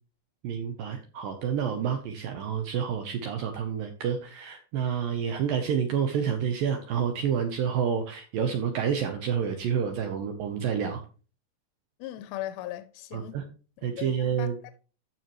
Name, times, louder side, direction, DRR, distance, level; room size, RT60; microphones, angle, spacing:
voice 1, 0.4-11.0 13.1-13.4 13.8-14.6, right 7 dB, 75° right, 2.1 m, -29 dB
voice 2, 12.0-13.4 13.8-14.5, left 14 dB, 85° left, 2.9 m, -38 dB
14.0 x 5.9 x 3.1 m
omnidirectional pair, 5.1 m